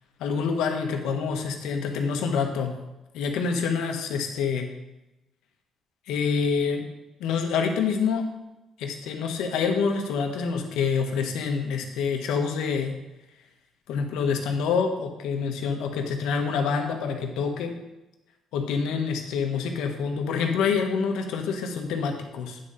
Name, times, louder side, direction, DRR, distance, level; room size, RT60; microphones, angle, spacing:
voice 1, 0.2-2.8 3.1-4.7 6.1-6.9 7.2-8.2 8.8-13.0 13.9-17.8 18.5-22.6, left 5 dB, 85° left, 3 dB, 1.0 m, -27 dB
9.1 x 3.8 x 5.5 m, 0.98 s
cardioid pair, 90°, 0 cm